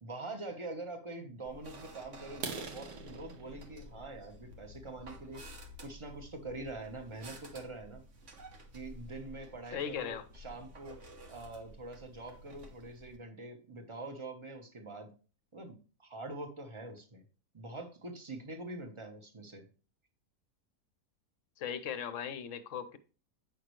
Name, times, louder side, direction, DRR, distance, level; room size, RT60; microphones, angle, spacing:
voice 1, 0.0-5.4 5.8-8.0 8.7-11.0 11.3-15.1 15.5-17.2 17.5-19.7, right 2 dB, 20° right, 1.1 m, -44 dB
sound 1, 1.4-13.2, equal, 50° right, 1.5 m, -52 dB
sound 2, 2.3-6.1 6.6-6.8 7.3-7.4 7.8-7.9 8.3-8.4 8.8-8.9 9.1-9.6, right 5 dB, 85° right, 1.6 m, -46 dB
voice 2, 9.7-10.2 21.6-23.0, left 8 dB, 60° left, 1.0 m, -38 dB
8.6 x 5.7 x 3.2 m
omnidirectional pair, 1.6 m